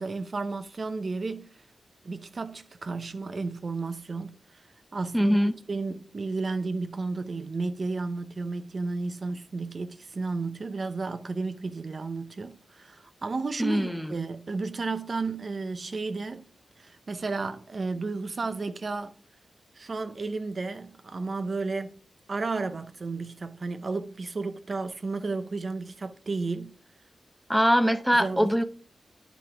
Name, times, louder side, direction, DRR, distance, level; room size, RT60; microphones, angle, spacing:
voice 1, 0.0-1.5 2.0-4.6 4.9-5.4 5.7-16.5 16.8-19.1 19.7-21.9 22.3-26.7 28.2-28.6, right 3 dB, 45° right, 0.6 m, -33 dB
voice 2, 5.1-5.6 13.6-14.1 27.5-28.6, equal, ahead, 0.7 m, -22 dB
9.5 x 6.1 x 3.5 m
wide cardioid pair, 100°, 0 cm